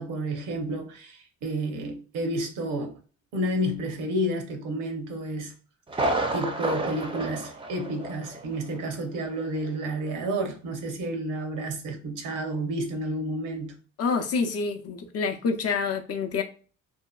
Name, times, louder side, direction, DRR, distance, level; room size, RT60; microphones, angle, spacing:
voice 1, 0.0-3.0 3.3-5.5 6.3-13.7, right 1 dB, 90° right, 0.7 m, -30 dB
Thunder, 5.9-8.5 8.7-8.8 9.4-9.5, right 2 dB, 15° right, 0.4 m, -29 dB
voice 2, 14.0-16.4, left 5 dB, 55° left, 0.5 m, -27 dB
2.7 x 2.4 x 2.2 m
cardioid pair, 90°, 30 cm